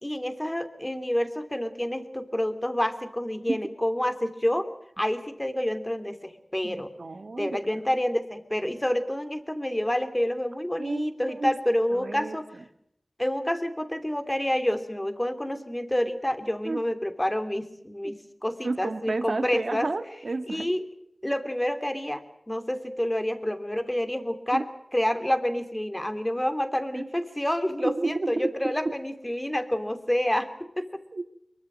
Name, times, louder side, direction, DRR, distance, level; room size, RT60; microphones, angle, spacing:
voice 1, 0.0-4.7 5.0-6.9 7.4-12.5 13.2-19.9 20.5-20.8 21.2-24.7 24.9-31.0, left 1 dB, 15° left, 10 dB, 3.0 m, -28 dB
voice 2, 6.6-7.7 10.8-11.5 11.9-12.6 16.6-16.8 18.0-18.1 18.6-20.7 24.5-24.7 26.9-27.0 27.8-28.5 31.1-31.2, right 3 dB, 70° right, 11 dB, 1.6 m, -31 dB
24.0 x 23.0 x 6.4 m, 0.75 s
wide cardioid pair, 50°, 0 cm